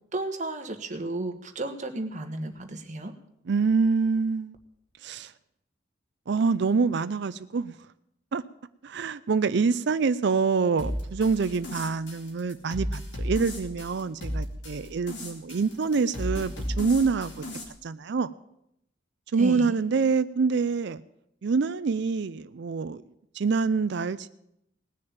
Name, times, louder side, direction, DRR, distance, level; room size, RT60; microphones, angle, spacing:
voice 1, 0.1-3.1 19.4-19.8, right 2 dB, 40° right, 6 dB, 1.4 m, -33 dB
voice 2, 3.5-4.6 5.0-5.3 6.3-7.8 8.3-8.4 8.8-17.4 17.8-18.3 19.3-21.0 21.4-23.0 23.3-24.3, right 4 dB, 60° right, 12 dB, 0.4 m, -26 dB
sound 1, 10.8-17.6, equal, 65° left, 2.9 m, -35 dB
18.5 x 6.5 x 8.7 m, 0.79 s
head